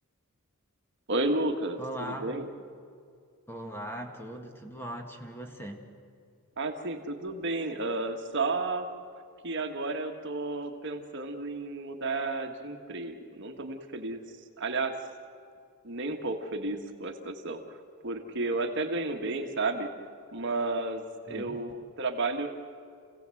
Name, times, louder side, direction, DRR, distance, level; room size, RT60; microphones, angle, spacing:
voice 1, 1.1-2.5 6.6-8.9 9.4-14.2 14.6-14.9 15.8-17.8 18.0-19.9 20.3-22.5, right 2 dB, 55° right, 4 dB, 1.5 m, -32 dB
voice 2, 1.8-2.3 3.5-5.8 21.3-21.6, right 1 dB, 10° left, 3 dB, 1.7 m, -39 dB
29.0 x 16.5 x 7.7 m, 2.3 s
head